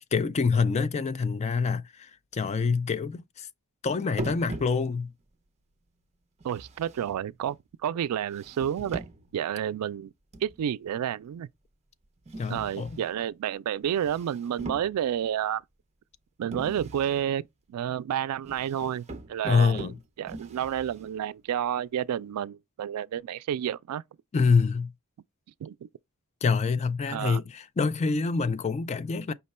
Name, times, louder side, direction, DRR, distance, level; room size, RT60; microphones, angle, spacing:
voice 1, 0.1-3.5 3.8-5.1 12.4-13.0 19.4-19.9 24.3-24.9 26.4-29.3, left 5 dB, 30° left, 0.3 m, -26 dB
sound 1, 4.1-5.2 6.4-7.6 8.3-9.4 10.3-10.8 12.3-13.2 13.8-15.3 16.5-17.3 18.4-21.2, right 2 dB, 30° right, 0.6 m, -42 dB
voice 2, 6.4-7.6 7.8-9.0 9.3-10.1 10.4-11.5 12.5-15.6 16.4-17.4 17.7-19.9 20.2-24.0 25.6-25.9 27.1-27.4, right 9 dB, 80° right, 0.3 m, -30 dB
5.5 x 2.2 x 4.1 m
head